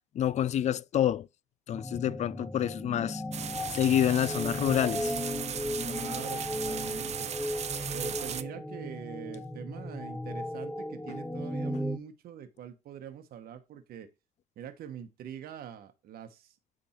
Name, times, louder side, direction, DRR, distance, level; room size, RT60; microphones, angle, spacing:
voice 1, 0.1-1.3 1.7-3.2 3.7-5.1, left 10 dB, 45° left, 0.4 m, -27 dB
sound 1, 1.7-12.0, left 1 dB, 5° left, 0.6 m, -36 dB
sound 2, 3.3-8.4, right 9 dB, 40° right, 0.6 m, -37 dB
voice 2, 5.8-7.3 7.9-14.1 14.6-16.5, right 9 dB, 65° right, 1.1 m, -44 dB
8.9 x 3.5 x 4.3 m
cardioid pair, 110°, 17 cm